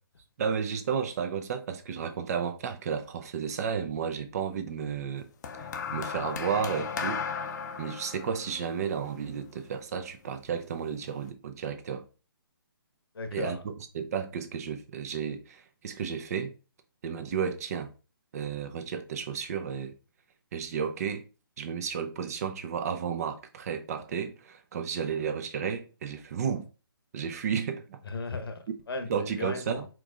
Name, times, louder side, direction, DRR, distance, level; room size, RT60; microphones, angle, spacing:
voice 1, 0.4-5.3 5.9-7.2 7.8-12.1 13.3-16.5 17.0-17.9 18.3-19.9 20.5-21.3 21.6-26.7 27.1-28.0 29.0-29.9, right 7 dB, 40° right, 0.6 m, -32 dB
sound 1, 5.4-9.9 10.8-11.0, left 6 dB, 45° left, 0.6 m, -36 dB
voice 2, 13.1-13.6 28.1-29.9, left 3 dB, 75° left, 1.0 m, -36 dB
4.6 x 3.8 x 2.4 m
hypercardioid pair, 150°, 13 cm